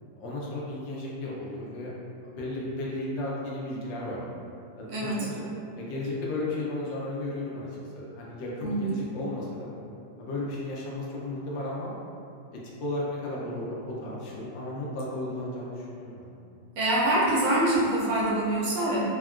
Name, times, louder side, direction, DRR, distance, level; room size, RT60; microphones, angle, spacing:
voice 1, 0.2-1.9 2.2-4.2 4.8-5.4 5.8-7.7 7.9-9.7 10.2-11.9 12.5-16.3, left 2 dB, 80° left, -5 dB, 1.3 m, -34 dB
voice 2, 4.9-5.3 8.6-9.0 16.8-19.0, right 1 dB, 75° right, -6 dB, 1.3 m, -25 dB
3.5 x 2.2 x 2.3 m, 2.5 s
omnidirectional pair, 2.0 m